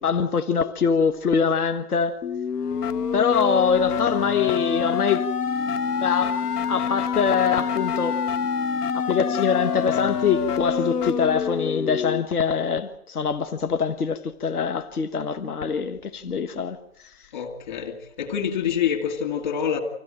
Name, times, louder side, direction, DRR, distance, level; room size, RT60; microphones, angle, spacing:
voice 1, 0.0-2.2 3.1-5.3 6.0-6.4 6.7-8.2 8.9-16.8, left 6 dB, 75° left, 1.5 m, -24 dB
sound 1, 2.2-12.2, left 6 dB, 90° left, 0.9 m, -26 dB
voice 2, 17.3-19.8, left 8 dB, 30° left, 2.5 m, -26 dB
26.0 x 16.0 x 8.8 m
hypercardioid pair, 165°, 45 cm